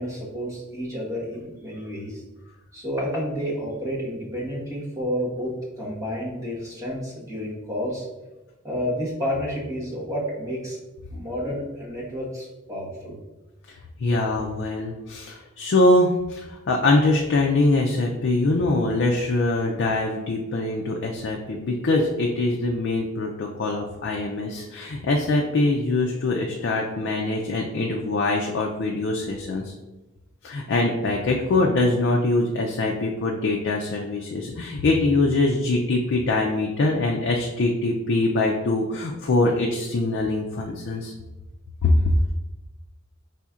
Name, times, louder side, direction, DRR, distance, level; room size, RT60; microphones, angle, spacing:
voice 1, 0.0-2.2 2.7-8.0 8.6-10.8 11.1-13.2, equal, 15° right, -6 dB, 1.2 m, -30 dB
voice 2, 13.7-29.7 30.4-41.1 41.8-42.1, left 2 dB, 60° left, 0 dB, 0.4 m, -23 dB
5.0 x 4.1 x 2.4 m, 1.1 s
head